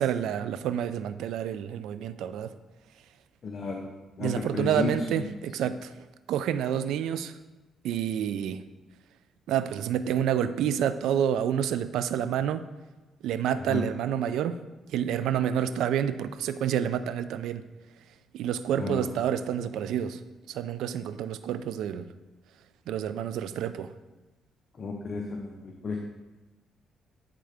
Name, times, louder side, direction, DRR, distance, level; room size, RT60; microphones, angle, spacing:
voice 1, 0.0-2.5 4.2-5.9 6.3-7.3 7.8-8.6 9.5-12.6 13.2-14.6 14.9-17.6 18.3-20.2 20.5-22.1 22.9-23.9, right 9 dB, 85° right, 12 dB, 0.3 m, -28 dB
voice 2, 3.4-3.9 4.2-5.2 13.7-13.8 18.8-19.1 24.8-26.0, left 4 dB, 45° left, 1 dB, 0.7 m, -33 dB
9.0 x 3.7 x 3.4 m, 1.1 s
cardioid pair, 90°, 0 cm